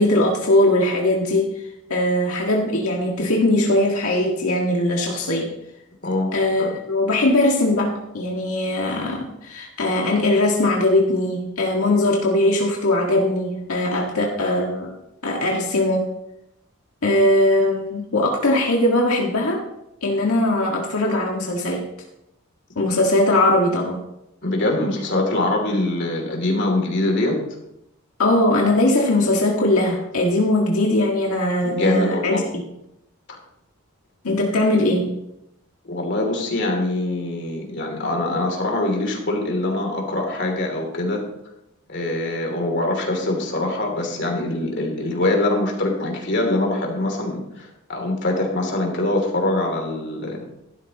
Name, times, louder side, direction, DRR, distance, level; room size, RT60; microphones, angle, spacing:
voice 1, 0.0-5.5 6.3-14.9 15.2-16.1 17.0-19.6 20.0-21.8 22.8-24.0 28.2-32.6 34.2-35.1, left 1 dB, 85° left, -1 dB, 1.7 m, -20 dB
voice 2, 24.4-27.4 31.6-32.4 33.3-33.4 35.8-41.2 41.9-50.4, left 2 dB, 55° left, 1 dB, 2.9 m, -23 dB
14.5 x 12.0 x 3.0 m, 0.85 s
head